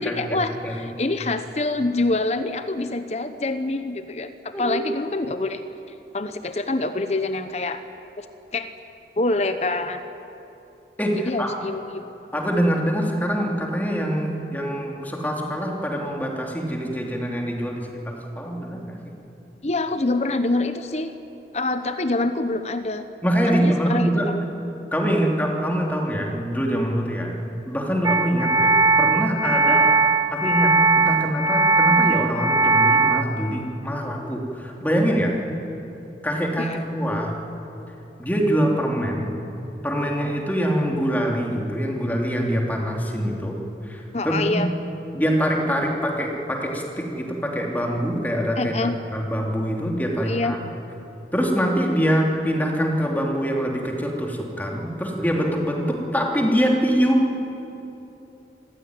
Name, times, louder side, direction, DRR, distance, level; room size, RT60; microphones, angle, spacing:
voice 1, 0.0-5.7 6.1-7.8 8.2-8.3 8.5-8.7 9.2-10.0 11.2-12.1 19.6-21.1 21.5-23.1 23.5-24.4 36.6-36.8 44.1-44.7 48.6-49.0 50.3-50.6, left 2 dB, 40° left, 9 dB, 0.8 m, -26 dB
voice 2, 11.0-11.5 12.3-19.0 23.2-24.3 24.9-27.3 27.7-29.9 30.3-35.4 36.2-37.3 38.2-39.3 39.8-43.5 43.8-44.6 45.1-48.8 49.1-50.6 51.3-57.2, equal, 10° left, 0 dB, 3.1 m, -24 dB
sound 1, 28.0-33.2, right 3 dB, 20° right, 0.6 m, -19 dB
26.0 x 15.5 x 9.8 m, 3.0 s
head